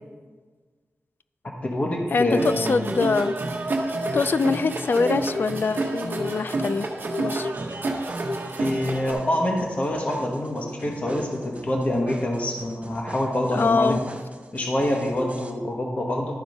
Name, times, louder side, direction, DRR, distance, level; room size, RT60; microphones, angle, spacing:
voice 1, 1.4-2.7 8.6-13.9 14.5-16.4, left 1 dB, 35° left, 1.1 m, -26 dB
voice 2, 2.1-3.3 4.1-6.9 7.2-7.5 13.5-14.0, left 4 dB, 50° left, 0.3 m, -24 dB
sound 1, 2.4-9.1, right 2 dB, 50° right, 1.1 m, -28 dB
sound 2, 7.5-15.5, right 2 dB, 30° right, 0.7 m, -43 dB
12.0 x 4.4 x 5.3 m
wide cardioid pair, 115°, 4 cm